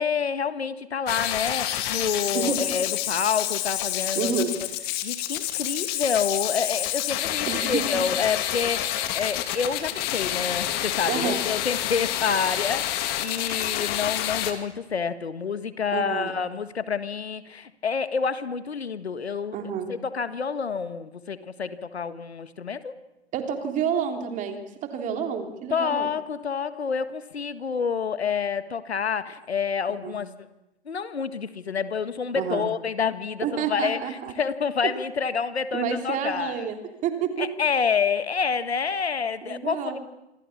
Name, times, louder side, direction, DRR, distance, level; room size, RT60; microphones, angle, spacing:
voice 1, 0.0-4.4 5.0-19.6 19.9-22.9 25.7-30.3 30.8-36.7 37.4-40.0, left 6 dB, 75° left, 12 dB, 1.7 m, -28 dB
sound 1, 1.1-14.5, left 13 dB, 30° left, 2.4 m, -28 dB
voice 2, 2.3-2.7 4.1-4.5 7.5-8.0 11.1-11.4 15.9-16.3 19.5-19.9 23.3-26.1 29.9-30.2 32.3-32.7 33.4-34.3 35.7-37.5 39.4-40.0, right 7 dB, 25° right, 5 dB, 3.4 m, -29 dB
26.5 x 25.0 x 7.3 m, 0.94 s
figure-of-eight pair, 120°, 32 cm